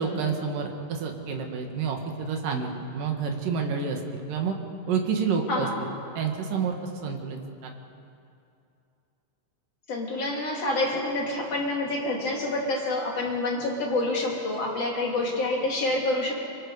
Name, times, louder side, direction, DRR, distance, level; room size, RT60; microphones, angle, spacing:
voice 1, 0.0-4.6 4.9-6.8 7.0-7.7, right 5 dB, 90° right, 2 dB, 3.5 m, -29 dB
voice 2, 5.5-5.9 9.9-16.3, left 2 dB, 50° left, -1 dB, 3.8 m, -27 dB
25.5 x 25.5 x 4.9 m, 2.6 s
omnidirectional pair, 3.7 m